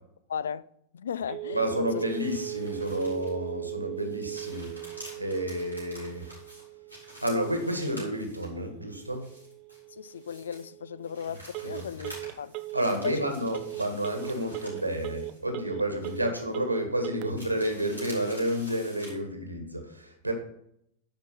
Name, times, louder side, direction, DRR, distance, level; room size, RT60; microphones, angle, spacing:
voice 1, 0.3-0.6 0.9-2.0 9.9-12.5 12.9-13.2, left 7 dB, 65° left, 0.3 m, -36 dB
Telephone, 1.3-17.3, right 21 dB, 40° right, 0.4 m, -39 dB
voice 2, 1.5-4.7 5.2-6.3 7.2-9.3 11.7-11.9 12.7-20.3, equal, 85° right, 1.6 m, -30 dB
sound 1, 1.9-3.5 3.9-8.6 9.1-10.7 11.0-15.7 16.0-16.6 17.3-19.1, equal, 90° left, 4.0 m, -49 dB
10.5 x 4.9 x 5.7 m
figure-of-eight pair, 90°, 0 cm